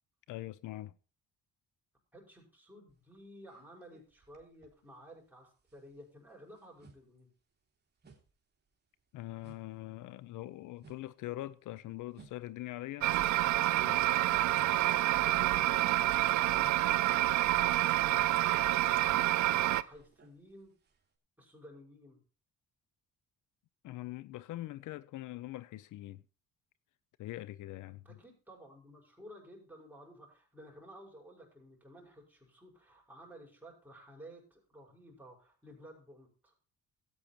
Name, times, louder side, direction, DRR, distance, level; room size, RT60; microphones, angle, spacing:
voice 1, 0.3-0.9 9.1-13.1 13.8-14.1 23.8-26.2 27.2-28.2, left 16 dB, 80° left, 0.6 m, -43 dB
voice 2, 2.1-7.3 19.7-20.7 21.4-22.2 28.0-36.5, equal, 5° right, 5.6 m, -54 dB
sound 1, 2.9-5.3 5.5-14.2 14.5-21.2, right 4 dB, 35° right, 2.8 m, -61 dB
sound 2, 13.0-19.8, right 16 dB, 75° right, 0.5 m, -28 dB
13.5 x 8.8 x 4.5 m
cardioid pair, 90°, 30 cm